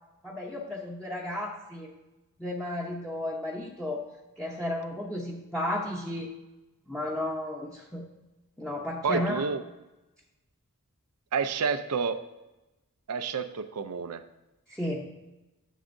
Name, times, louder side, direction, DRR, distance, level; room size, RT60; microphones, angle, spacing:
voice 1, 0.2-1.9 2.4-4.1 4.4-6.3 6.9-8.0 8.6-9.4 14.7-15.1, left 1 dB, 5° left, -4 dB, 0.8 m, -33 dB
voice 2, 9.0-9.6 11.3-12.2 13.1-14.2, right 5 dB, 85° right, 10 dB, 0.5 m, -29 dB
10.0 x 7.1 x 2.6 m, 1.0 s
head